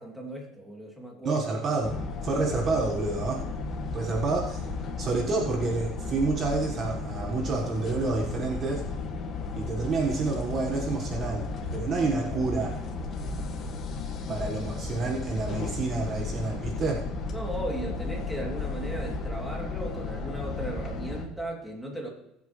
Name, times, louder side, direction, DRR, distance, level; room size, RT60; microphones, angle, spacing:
voice 1, 0.0-1.4 17.3-22.1, right 1 dB, ahead, -1 dB, 3.0 m, -36 dB
voice 2, 1.2-2.0 2.2-3.4 3.9-4.6 5.0-8.9 9.5-12.8 14.3-17.0, right 3 dB, 35° right, 1 dB, 1.6 m, -29 dB
sound 1, 1.8-21.3, left 3 dB, 40° left, 1.9 m, -34 dB
21.0 x 8.3 x 3.3 m, 0.83 s
cardioid pair, 125°, 0 cm